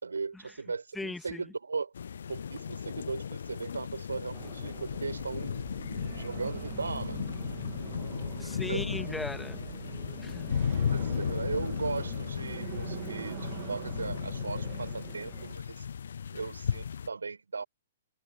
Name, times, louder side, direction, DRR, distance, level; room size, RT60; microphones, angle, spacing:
voice 1, 0.0-1.9 2.3-5.6 6.1-7.2 8.5-8.9 10.9-15.9 16.3-17.6, right 4 dB, 75° right, 4.7 m, -37 dB
voice 2, 0.9-1.4 8.4-9.6 10.2-10.5, left 3 dB, 5° left, 2.6 m, -38 dB
sound 1, 1.9-17.1, left 7 dB, 60° left, 0.4 m, -35 dB
sound 2, 4.3-15.5, right 19 dB, 40° right, 1.8 m, -44 dB
figure-of-eight pair, 120°, 0 cm